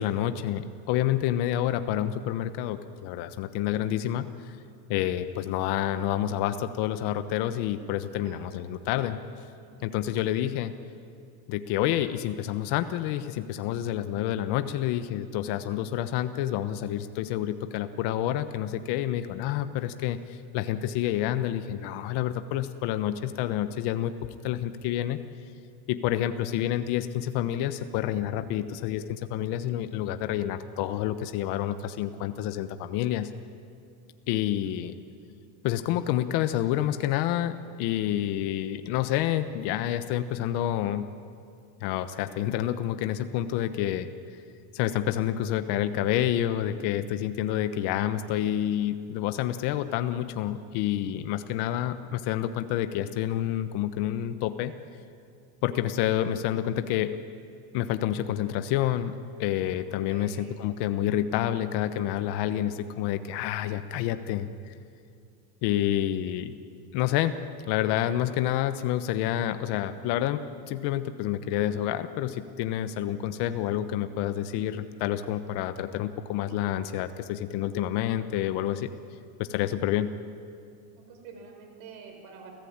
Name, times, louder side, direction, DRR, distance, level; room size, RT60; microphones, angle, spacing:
voice 1, 0.0-4.6 4.9-9.2 9.8-10.7 11.5-24.1 24.4-25.2 25.9-33.3 34.3-34.9 35.6-41.1 41.8-44.1 44.7-54.7 55.6-57.2 57.7-64.7 65.6-66.5 66.9-67.3 67.7-78.9 79.4-80.1, left 12 dB, 60° left, 10 dB, 1.2 m, -28 dB
voice 2, 8.2-8.5 9.6-9.9 34.4-34.8 60.1-60.6 80.9-82.5, right 6 dB, 60° right, 4 dB, 5.8 m, -48 dB
29.0 x 15.5 x 8.8 m, 2.4 s
cardioid pair, 140°, 45 cm